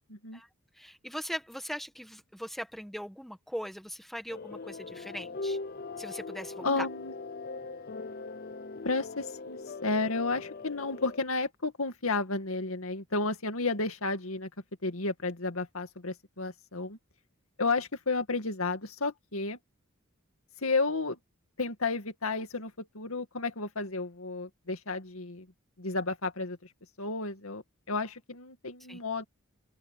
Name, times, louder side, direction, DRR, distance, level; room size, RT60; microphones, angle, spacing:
voice 1, 0.1-0.4 6.6-7.1 8.8-14.5 14.8-17.0 17.6-19.6 20.6-21.2 21.6-25.5 25.8-26.6 27.0-29.2, left 3 dB, 85° left, 2.2 m, -32 dB
voice 2, 0.7-5.6 6.0-6.9 28.9-29.0, equal, ahead, 1.6 m, -40 dB
sound 1, 4.3-11.2, left 3 dB, 45° left, 0.6 m, -40 dB
open air
head